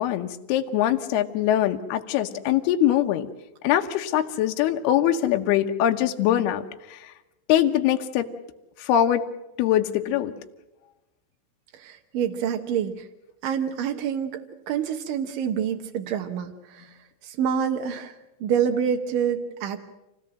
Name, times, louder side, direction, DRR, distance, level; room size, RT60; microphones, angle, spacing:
voice 1, 0.0-3.3 3.6-6.6 6.9-7.1 7.5-8.3 8.8-9.3 9.6-10.3, left 11 dB, 70° left, 4 dB, 2.6 m, -22 dB
voice 2, 11.7-13.1 13.4-16.9 17.2-19.8, right 8 dB, 80° right, 5 dB, 1.9 m, -27 dB
27.0 x 17.0 x 7.6 m, 0.98 s
omnidirectional pair, 5.6 m